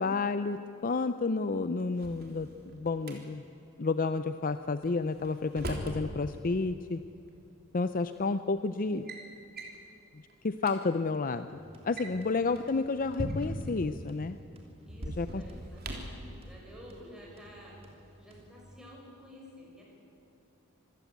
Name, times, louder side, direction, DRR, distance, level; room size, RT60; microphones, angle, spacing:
voice 1, 0.0-3.4 3.8-7.0 7.7-9.1 10.1-14.4 15.2-15.4, left 3 dB, 40° left, 11 dB, 0.6 m, -31 dB
Drawer open or close, 1.8-3.2 4.8-6.0 7.3-7.4 8.2-8.5 8.8-9.2 9.6-9.8 10.3-10.4 10.6-10.8 11.8-13.7 14.9-16.2, right 1 dB, 50° right, 3.4 m, -39 dB
sound 1, 11.3-18.8, equal, 30° right, 2.9 m, -56 dB
voice 2, 14.9-17.8 18.2-19.9, equal, 5° right, -4 dB, 5.9 m, -51 dB
26.0 x 15.5 x 9.4 m, 2.8 s
head